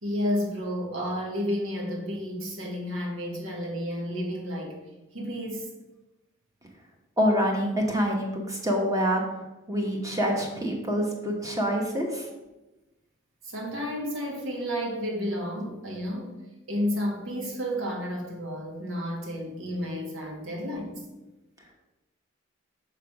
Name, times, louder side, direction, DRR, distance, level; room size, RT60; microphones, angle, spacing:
voice 1, 0.0-4.8 5.1-5.7 13.4-16.4 16.7-21.0, equal, 90° right, 0 dB, 1.5 m, -31 dB
voice 2, 7.2-9.2 9.7-12.3, equal, 15° right, 1 dB, 1.0 m, -26 dB
6.1 x 3.4 x 5.8 m, 1.0 s
head